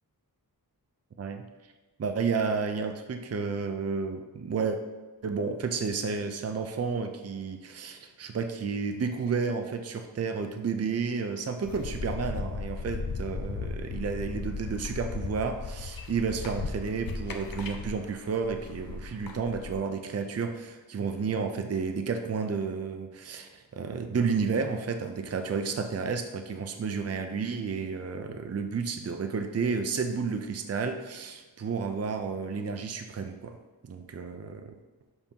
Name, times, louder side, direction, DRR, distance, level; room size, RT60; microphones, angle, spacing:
voice 1, 2.0-4.8 5.2-33.6 33.8-34.7, right 5 dB, 40° right, 7 dB, 0.5 m, -31 dB
sound 1, 11.6-19.7, left 4 dB, 65° left, 0.7 m, -36 dB
7.0 x 5.2 x 2.8 m, 1.3 s
wide cardioid pair, 85°, 38 cm